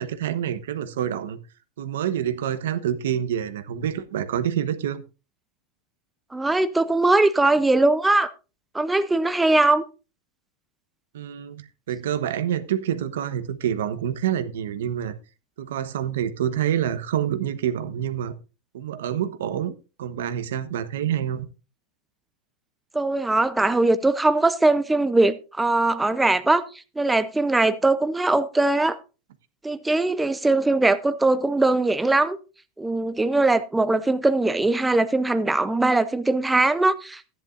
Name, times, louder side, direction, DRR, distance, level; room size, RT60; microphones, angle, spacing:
voice 1, 0.0-1.4 1.8-5.0 11.1-15.1 15.6-18.3 18.7-21.5, right 10 dB, 90° right, 1.1 m, -27 dB
voice 2, 6.3-8.3 8.7-9.8 22.9-26.6 27.0-29.0 29.6-32.4 32.8-37.2, right 2 dB, 5° right, 0.6 m, -21 dB
14.0 x 10.5 x 2.6 m
supercardioid pair, 150°, 0 cm